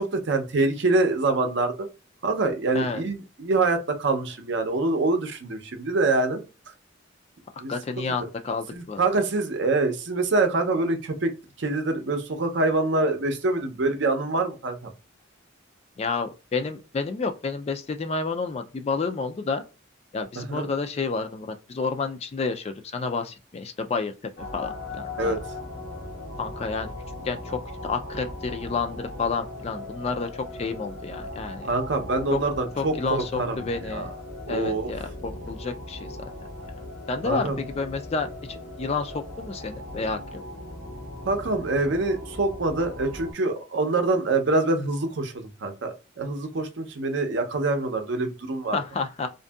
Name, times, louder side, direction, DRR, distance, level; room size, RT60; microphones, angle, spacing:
voice 1, 0.0-1.9 2.2-6.4 7.6-7.7 8.7-11.3 11.6-14.9 20.4-20.7 25.2-25.4 31.7-34.1 34.5-34.9 37.2-37.6 41.2-45.3 45.6-48.8, right 2 dB, 60° right, 0.6 m, -25 dB
voice 2, 7.7-9.0 16.0-19.6 20.1-24.1 24.5-25.4 26.4-26.9 27.2-27.6 27.9-31.7 32.3-32.4 32.8-34.1 34.5-36.2 37.1-40.2 48.7-49.3, left 4 dB, 30° left, 0.3 m, -30 dB
sound 1, 24.4-43.3, left 1 dB, 60° left, 0.7 m, -38 dB
2.6 x 2.5 x 2.3 m
head